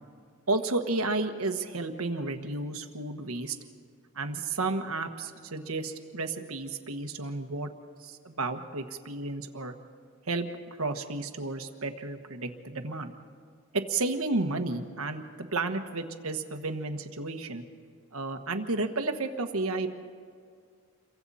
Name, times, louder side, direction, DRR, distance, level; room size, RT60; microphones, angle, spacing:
voice 1, 0.5-3.6 4.1-7.7 8.0-9.7 10.3-10.5 10.8-13.1 13.7-17.6 18.1-19.9, right 3 dB, 75° right, 7 dB, 1.4 m, -32 dB
29.0 x 23.5 x 4.2 m, 2.1 s
head